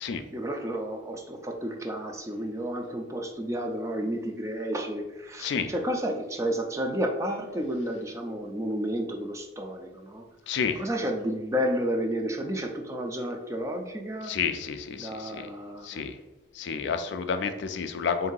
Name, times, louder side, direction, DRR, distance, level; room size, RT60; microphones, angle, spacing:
voice 1, 0.3-10.2 10.8-14.3 14.9-16.1, equal, 15° right, 2 dB, 0.4 m, -31 dB
voice 2, 10.5-10.8 14.3-15.5 15.8-16.1 16.5-18.3, left 6 dB, 60° left, 8 dB, 0.3 m, -30 dB
3.8 x 2.6 x 3.7 m, 1.0 s
head